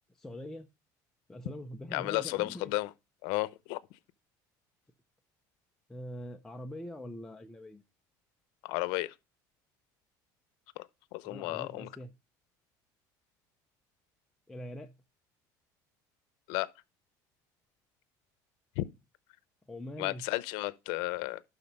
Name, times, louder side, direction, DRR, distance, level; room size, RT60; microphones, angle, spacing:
voice 1, 0.1-0.7 1.3-2.7 5.9-7.8 11.2-12.1 14.5-14.9 19.7-20.2, left 1 dB, 5° left, 0.6 m, -43 dB
voice 2, 1.9-2.9 3.2-3.8 8.6-9.1 10.8-10.9 11.1-11.9 16.5-16.7 18.8-18.9 20.0-21.4, left 19 dB, 80° left, 0.7 m, -33 dB
12.0 x 4.1 x 5.3 m
cardioid pair, 155°, 8 cm